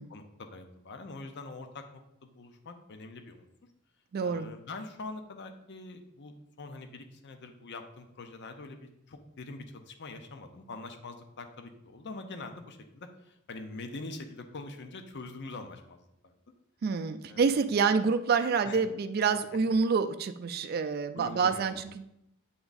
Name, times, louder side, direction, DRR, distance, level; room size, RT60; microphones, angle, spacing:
voice 1, 0.1-1.8 2.2-3.5 4.2-16.3 17.3-17.6 18.6-18.8 21.1-21.8, left 3 dB, 55° left, 7 dB, 0.7 m, -44 dB
voice 2, 4.1-4.5 16.8-22.0, right 5 dB, 50° right, 8 dB, 0.4 m, -27 dB
7.8 x 3.5 x 4.0 m, 0.81 s
head